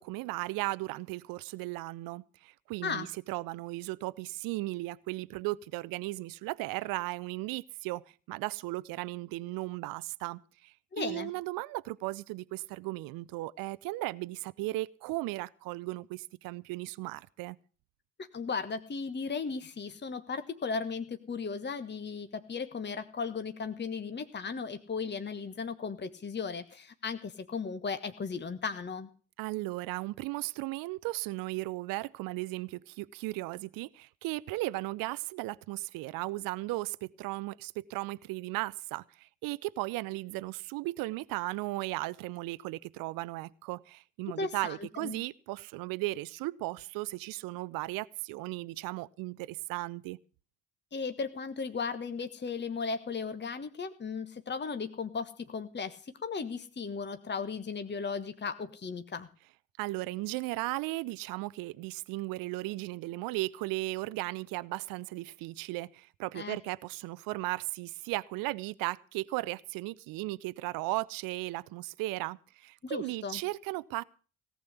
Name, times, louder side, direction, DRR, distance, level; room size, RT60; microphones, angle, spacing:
voice 1, 0.0-17.6 29.4-50.2 59.8-74.0, right 20 dB, 55° right, 0.6 m, -36 dB
voice 2, 10.9-11.3 18.2-29.1 44.3-45.2 50.9-59.3 66.3-66.6 72.8-73.4, left 5 dB, 25° left, 1.4 m, -36 dB
18.0 x 7.5 x 8.2 m
figure-of-eight pair, 40°, 41 cm